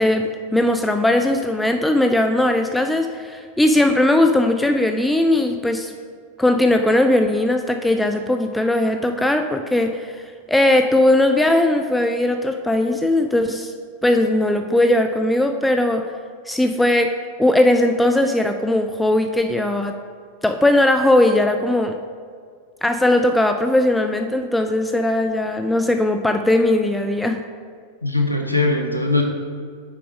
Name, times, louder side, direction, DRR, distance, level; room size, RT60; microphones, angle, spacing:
voice 1, 0.0-5.9 6.4-10.2 10.5-13.7 14.0-16.1 16.5-20.0 20.4-22.0 22.8-27.4, left 1 dB, 5° left, 5 dB, 0.3 m, -19 dB
voice 2, 28.0-29.2, left 2 dB, 90° left, 2 dB, 0.6 m, -20 dB
6.0 x 4.7 x 5.0 m, 2.1 s
figure-of-eight pair, 90°, 0 cm